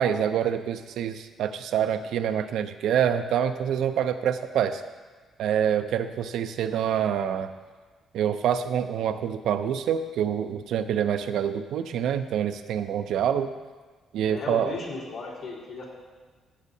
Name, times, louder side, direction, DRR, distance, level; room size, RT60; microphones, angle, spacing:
voice 1, 0.0-4.8 5.4-7.5 8.1-13.5 14.1-14.8, right 9 dB, 80° right, 9 dB, 0.4 m, -26 dB
voice 2, 14.3-15.8, left 3 dB, 80° left, -6 dB, 3.1 m, -35 dB
13.0 x 7.3 x 2.7 m, 1.4 s
cardioid pair, 90°, 0 cm